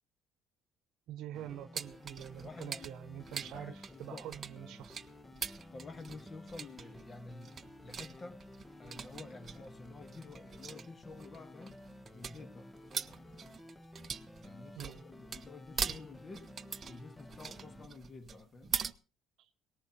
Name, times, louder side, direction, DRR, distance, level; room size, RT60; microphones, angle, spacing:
voice 1, 1.1-5.0 14.7-15.0 19.4-19.5, right 12 dB, 70° right, 1.1 m, -46 dB
sound 1, 1.3-17.9, left 1 dB, 10° left, 1.0 m, -53 dB
sound 2, 1.7-18.9, right 6 dB, 35° right, 0.8 m, -43 dB
voice 2, 2.4-3.0 3.4-4.2 5.7-7.6 7.8-8.5 8.8-11.8 12.1-12.7 14.4-16.5 16.9-18.8, left 3 dB, 30° left, 1.5 m, -50 dB
19.0 x 18.5 x 3.0 m
cardioid pair, 100°, 0 cm